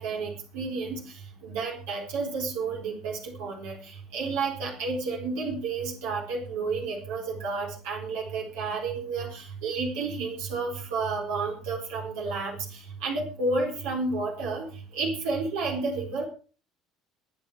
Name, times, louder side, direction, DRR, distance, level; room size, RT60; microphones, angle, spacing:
voice 1, 0.0-14.7 14.9-16.3, right 3 dB, 65° right, 0 dB, 4.3 m, -31 dB
22.5 x 8.9 x 4.8 m, 0.38 s
figure-of-eight pair, 60°, 0 cm